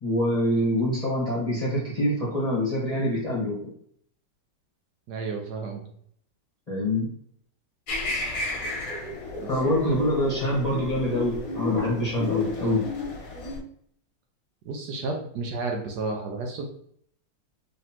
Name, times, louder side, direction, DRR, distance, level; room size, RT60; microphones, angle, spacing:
voice 1, 0.0-3.6 6.7-7.1 9.5-12.8, left 1 dB, 25° left, -6 dB, 1.1 m, -25 dB
voice 2, 5.1-5.8 9.4-9.9 14.6-16.7, right 3 dB, 70° right, 2 dB, 1.1 m, -32 dB
sound 1, 7.9-13.6, left 3 dB, 55° left, 1.2 m, -32 dB
4.0 x 3.2 x 2.8 m, 0.64 s
omnidirectional pair, 2.0 m